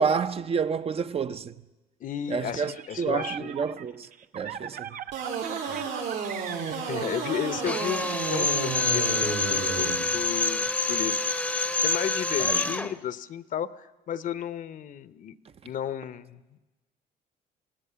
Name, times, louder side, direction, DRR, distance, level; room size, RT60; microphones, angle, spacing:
voice 1, 0.0-1.6 2.3-4.1 4.3-5.0 12.4-12.6, right 6 dB, 35° right, 0.8 m, -29 dB
voice 2, 2.0-3.5 5.7-5.8 6.7-11.3 11.8-15.3 15.6-16.6, left 9 dB, 50° left, 0.9 m, -33 dB
sound 1, 2.6-8.4, right 9 dB, 55° right, 1.0 m, -40 dB
sound 2, 5.1-9.9, right 6 dB, 85° right, 7.4 m, -32 dB
Drill, 7.6-12.9, left 3 dB, 5° left, 0.9 m, -27 dB
27.5 x 17.0 x 6.9 m
cardioid pair, 110°, 17 cm